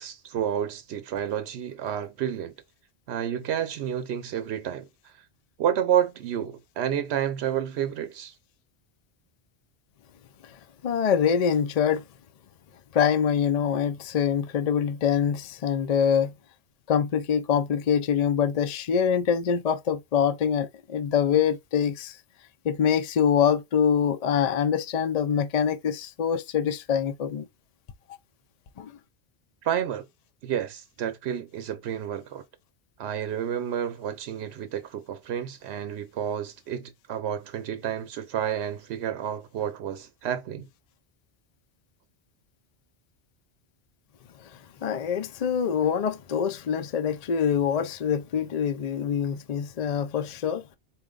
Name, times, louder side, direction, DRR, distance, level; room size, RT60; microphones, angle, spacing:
voice 1, 0.0-2.5 3.1-5.1 5.6-8.3 29.6-30.0 30.4-32.4 33.0-40.7, right 9 dB, 90° right, 0.9 m, -30 dB
voice 2, 10.8-12.0 12.9-16.3 16.9-22.2 22.6-27.5 28.8-28.9 44.4-50.6, left 7 dB, 50° left, 0.5 m, -25 dB
4.2 x 2.2 x 3.8 m
omnidirectional pair, 1.1 m